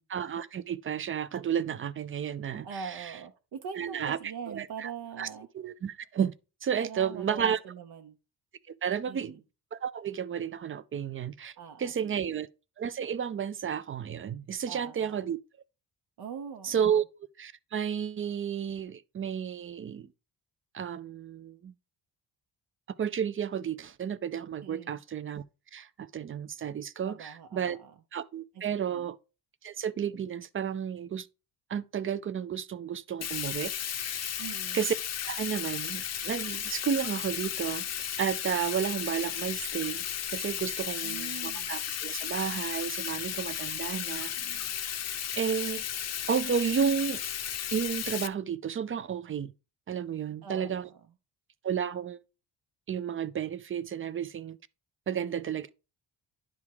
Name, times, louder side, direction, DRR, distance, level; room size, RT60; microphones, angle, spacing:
voice 1, 0.1-3.1 3.8-4.9 5.2-5.3 5.5-6.3 6.6-7.6 8.8-9.4 9.7-12.5 12.8-15.4 16.6-17.0 17.4-20.1 20.7-21.7 23.0-25.4 25.7-27.8 28.1-29.2 29.6-31.3 31.7-34.4 34.7-34.9 35.2-37.9 38.2-40.0 40.3-44.3 45.4-45.8 46.3-47.2 47.7-49.5 49.9-50.9 51.6-52.2 52.9-54.6 55.1-55.7, right 8 dB, 35° right, 0.4 m, -32 dB
voice 2, 2.6-5.5 6.8-8.2 9.1-9.4 11.6-12.2 14.7-15.3 16.2-17.0 24.6-25.0 27.0-27.9 28.5-28.6 28.9-29.1 34.4-34.8 41.0-41.7 43.9-44.7 50.4-51.0 55.2-55.6, right 6 dB, 70° right, 0.9 m, -43 dB
Bathtub (filling or washing), 33.2-48.3, left 9 dB, 40° left, 0.6 m, -34 dB
10.5 x 3.6 x 4.7 m
wide cardioid pair, 165°, 39 cm